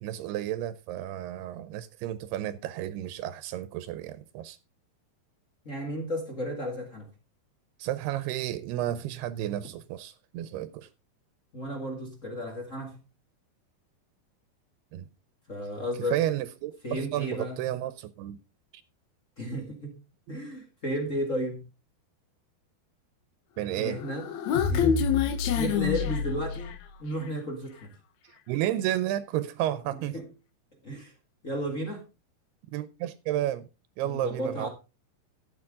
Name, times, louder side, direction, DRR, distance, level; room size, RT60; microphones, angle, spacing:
voice 1, 0.0-4.6 7.8-10.9 14.9-15.1 16.1-18.4 23.6-24.0 28.5-30.2 32.7-33.7 34.0-34.7, right 13 dB, 85° right, 2.6 m, -32 dB
voice 2, 5.6-7.1 11.5-13.0 15.5-16.2 16.8-17.6 19.4-19.9 20.3-21.6 23.8-24.2 24.7-26.7 27.0-27.9 30.1-30.2 30.8-31.1 31.4-32.0 34.0-34.7, equal, 35° left, 1.2 m, -33 dB
Human voice, 23.9-26.9, left 7 dB, 70° left, 1.7 m, -27 dB
12.0 x 8.7 x 3.7 m
omnidirectional pair, 4.6 m